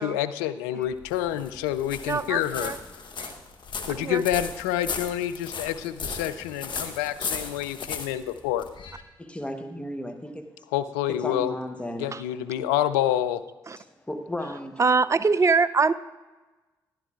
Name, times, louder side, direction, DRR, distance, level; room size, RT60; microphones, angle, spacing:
voice 1, 0.0-2.7 3.9-8.7 10.7-11.6 12.0-13.4, left 12 dB, 85° left, 11 dB, 0.4 m, -28 dB
sound 1, 0.8-9.0, left 5 dB, 50° left, 1.1 m, -36 dB
voice 2, 2.1-2.8 3.2-3.3 3.9-4.2 12.1-12.2 13.7-13.8 14.8-15.9, right 4 dB, 30° right, 16 dB, 0.5 m, -23 dB
voice 3, 9.2-10.6 11.1-12.1 13.8-14.8, left 1 dB, 10° left, 5 dB, 1.0 m, -35 dB
13.5 x 11.0 x 2.4 m, 1.2 s
hypercardioid pair, 40°, 10 cm